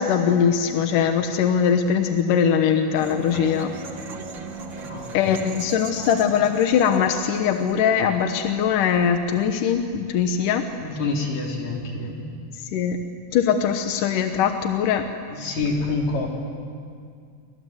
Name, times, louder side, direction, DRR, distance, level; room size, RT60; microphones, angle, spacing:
voice 1, 0.0-3.7 5.1-10.6 12.6-13.0 13.3-15.1, left 7 dB, 70° left, 6 dB, 2.2 m, -21 dB
sound 1, 2.9-8.0, right 4 dB, 45° right, 1.5 m, -37 dB
voice 2, 4.8-5.3 10.8-12.2 15.3-16.3, left 3 dB, 50° left, 0 dB, 5.0 m, -27 dB
30.0 x 25.0 x 8.0 m, 2.2 s
omnidirectional pair, 4.9 m